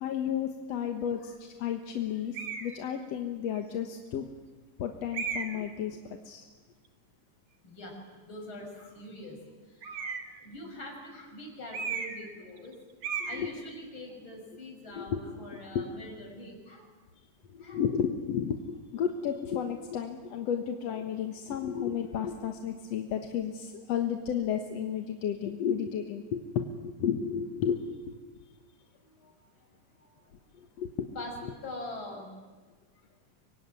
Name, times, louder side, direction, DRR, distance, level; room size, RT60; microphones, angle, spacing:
voice 1, 0.0-4.3 4.8-6.0 6.3-6.4 13.3-13.5 15.0-15.2 15.8-15.9 17.5-28.1 30.8-31.1, left 8 dB, 60° left, 5 dB, 2.1 m, -32 dB
sound 1, 2.3-2.7 3.6-3.7 5.1-5.7 9.8-10.4 11.7-12.3 12.6-12.7 13.0-13.4, right 6 dB, 45° right, 2.9 m, -35 dB
voice 2, 7.6-9.4 9.6-12.8 13.2-16.9 17.6-17.8 29.0-29.7 30.0-30.1 31.1-31.3 31.6-32.3, left 1 dB, 35° left, 2 dB, 6.6 m, -44 dB
25.0 x 23.0 x 9.7 m, 1.3 s
omnidirectional pair, 4.0 m